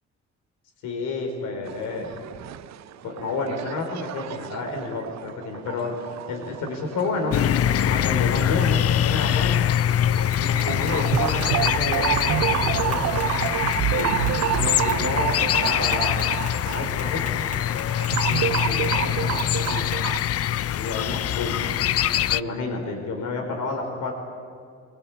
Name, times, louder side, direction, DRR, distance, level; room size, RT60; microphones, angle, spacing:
voice 1, 0.8-2.1 3.0-5.9 6.3-7.4 7.8-9.6 10.4-13.0 13.9-14.1 14.5-16.3 16.6-17.4 18.2-19.9 20.7-21.7 22.3-24.1, left 3 dB, 90° left, 2 dB, 4.6 m, -30 dB
sound 1, 1.7-20.2, right 13 dB, 65° right, 0.6 m, -29 dB
sound 2, 7.3-22.4, left 11 dB, 50° left, 0.5 m, -24 dB
Tap, 10.2-20.2, left 1 dB, 25° left, 3.9 m, -44 dB
23.5 x 22.5 x 8.6 m, 2.4 s
cardioid pair, 90°, 30 cm